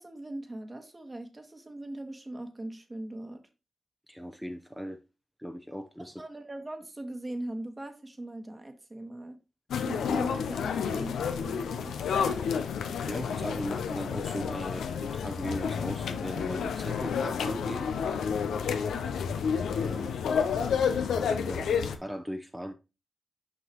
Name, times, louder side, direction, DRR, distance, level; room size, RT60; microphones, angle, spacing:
voice 1, 0.0-3.4 6.2-9.4 9.8-12.0, right 1 dB, 30° right, 1.3 m, -40 dB
voice 2, 4.1-5.0 5.4-6.2 13.0-17.9 19.7-20.2 20.8-21.0 21.3-22.7, equal, ahead, 0.7 m, -38 dB
sound 1, 9.7-22.0, left 6 dB, 85° left, 0.5 m, -30 dB
6.2 x 5.6 x 3.0 m
supercardioid pair, 40°, 0 cm